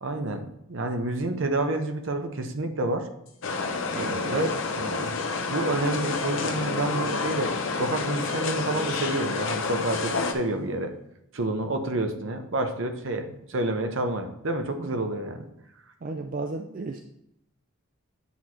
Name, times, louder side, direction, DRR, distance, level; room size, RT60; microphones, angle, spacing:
voice 1, 0.0-3.1 3.9-5.2 5.5-10.9 11.3-15.5, right 2 dB, 60° right, 6 dB, 0.8 m, -29 dB
sound 1, 3.3-4.0 4.4-7.8 8.2-10.7, left 5 dB, 90° left, 1.1 m, -46 dB
sound 2, 3.4-10.3, left 4 dB, 60° left, 0.7 m, -29 dB
voice 2, 16.0-17.0, right 3 dB, 40° right, 4 dB, 0.4 m, -34 dB
8.4 x 3.1 x 5.7 m, 0.79 s
head